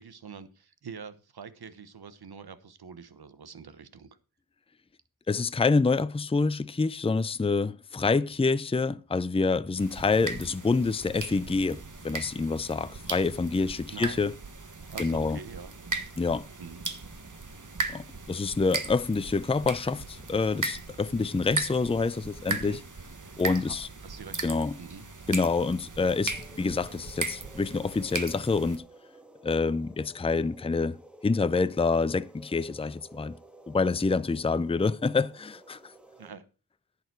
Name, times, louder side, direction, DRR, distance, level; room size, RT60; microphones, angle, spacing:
voice 1, 0.0-4.2 13.9-14.2 14.9-15.7 16.6-16.8 22.5-22.8 23.2-25.0 36.2-36.4, right 6 dB, 90° right, 1.1 m, -45 dB
voice 2, 5.3-14.3 15.0-15.4 16.2-16.5 17.9-22.8 23.4-23.8 24.4-24.7 25.3-28.8 29.4-31.0 31.2-33.4 33.7-35.8, left 4 dB, 15° left, 0.5 m, -27 dB
sound 1, 9.8-28.8, right 3 dB, 55° right, 1.6 m, -38 dB
sound 2, 26.3-36.3, equal, 5° right, 1.5 m, -53 dB
11.0 x 8.7 x 4.6 m
wide cardioid pair, 50°, 37 cm